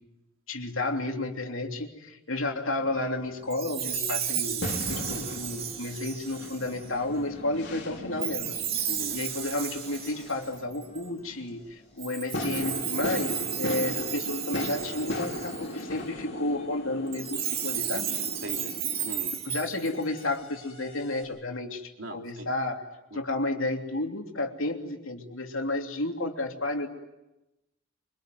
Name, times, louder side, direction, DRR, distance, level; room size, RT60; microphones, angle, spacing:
voice 1, 0.5-8.6 9.1-18.2 19.4-22.9 23.1-26.9, left 2 dB, 75° left, 3 dB, 3.1 m, -32 dB
sound 1, 2.8-19.1, left 1 dB, 50° left, 4.4 m, -38 dB
Chime, 3.5-6.8 8.2-11.0 12.0-15.8 17.1-20.2, right 9 dB, 45° right, 2.7 m, -33 dB
sound 2, 6.7-21.2, left 3 dB, 30° left, 6.2 m, -55 dB
voice 2, 8.9-9.2 18.4-19.6 22.0-22.5 23.1-23.2, right 1 dB, 70° right, 3 dB, 3.2 m, -40 dB
25.0 x 25.0 x 9.4 m, 0.97 s
head